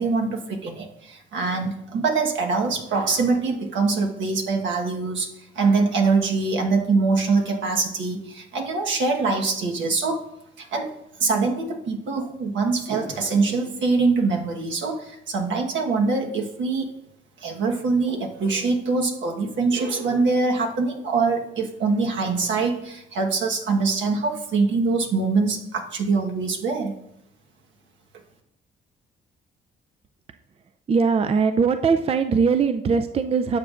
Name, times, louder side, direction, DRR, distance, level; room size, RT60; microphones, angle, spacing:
voice 1, 0.0-5.3 5.5-10.2 10.6-10.9 11.2-16.9 17.4-26.9, right 4 dB, 70° right, 2 dB, 1.3 m, -23 dB
voice 2, 30.9-33.6, right 5 dB, 30° right, 8 dB, 0.4 m, -21 dB
12.0 x 6.7 x 2.5 m, 0.80 s
cardioid pair, 90°, 20 cm